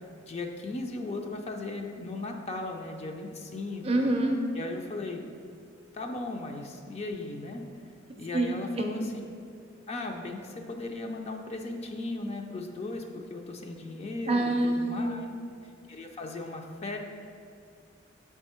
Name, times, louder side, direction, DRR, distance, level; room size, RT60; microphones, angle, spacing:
voice 1, 0.3-4.0 4.5-5.2 5.9-7.6 8.2-9.1 9.9-15.3 15.9-17.0, left 2 dB, 35° left, 3 dB, 0.4 m, -37 dB
voice 2, 3.8-4.4 8.3-8.8 14.3-15.3, right 2 dB, 30° right, 2 dB, 0.5 m, -27 dB
7.3 x 3.5 x 4.3 m, 2.4 s
head